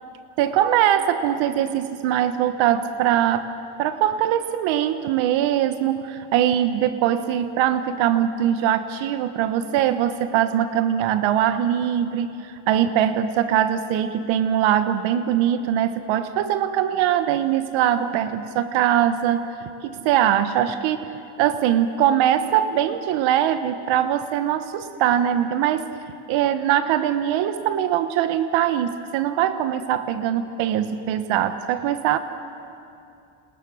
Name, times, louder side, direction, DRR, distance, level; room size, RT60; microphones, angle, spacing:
voice 1, 0.4-3.5 3.8-19.6 19.8-21.1 21.4-25.9 26.3-32.2, right 10 dB, 70° right, 10 dB, 1.3 m, -22 dB
29.0 x 27.0 x 6.3 m, 2.7 s
cardioid pair, 130°, 48 cm